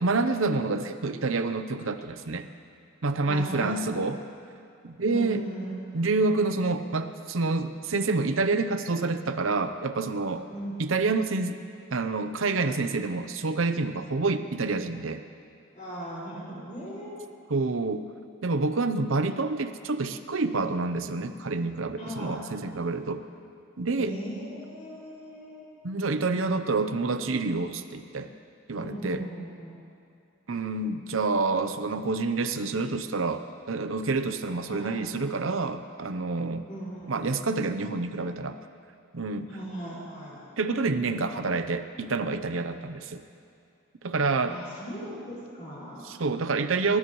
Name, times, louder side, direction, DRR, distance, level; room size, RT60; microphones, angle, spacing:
voice 1, 0.0-2.5 3.0-4.2 4.8-5.4 5.9-10.5 10.8-11.6 11.9-15.2 17.5-18.1 18.4-23.2 23.8-24.2 25.8-28.3 28.7-29.2 30.5-36.6 37.1-38.6 39.1-39.5 40.6-43.2 44.0-44.6 46.0-47.0, right 3 dB, 75° right, 9 dB, 0.7 m, -28 dB
voice 2, 3.3-3.8 5.0-6.0 10.5-10.8 15.7-17.3 22.0-22.5 24.0-25.7 28.8-29.7 34.7-35.0 36.7-37.2 39.5-40.4 44.4-46.2, right 1 dB, 35° left, -7 dB, 5.2 m, -38 dB
30.0 x 14.0 x 3.1 m, 2.4 s
head